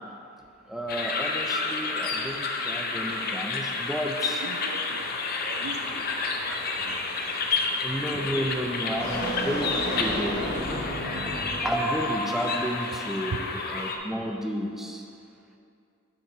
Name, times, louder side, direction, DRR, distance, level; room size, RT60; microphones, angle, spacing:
voice 1, 0.7-4.4 7.8-10.5 11.6-15.1, equal, ahead, 2 dB, 0.4 m, -31 dB
sound 1, 0.9-14.0, left 4 dB, 45° left, 0.6 m, -30 dB
voice 2, 4.4-5.2 5.4-6.1 6.4-7.0 7.6-7.8 8.3-8.6 9.2-9.4 13.3-13.4, right 5 dB, 85° right, 8 dB, 0.4 m, -40 dB
sound 2, 5.2-12.1, equal, 85° left, 1.6 m, -35 dB
6.5 x 6.3 x 4.3 m, 2.5 s
head